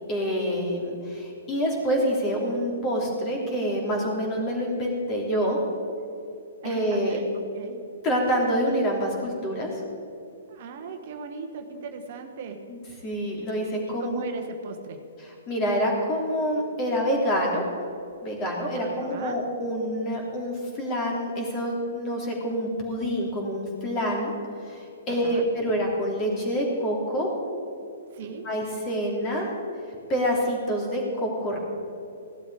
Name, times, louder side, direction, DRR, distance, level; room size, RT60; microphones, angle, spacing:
voice 1, 0.1-5.6 6.6-7.2 8.0-9.8 12.7-14.2 15.5-17.6 18.2-24.3 24.6-27.3 28.4-29.5 30.1-31.6, equal, 30° left, 0 dB, 3.3 m, -27 dB
voice 2, 6.6-7.9 10.5-12.7 13.9-15.1 18.8-19.4 25.1-25.5 28.1-28.5, right 5 dB, 45° right, 5 dB, 1.1 m, -38 dB
15.5 x 12.0 x 4.9 m, 2.6 s
figure-of-eight pair, 120°, 0 cm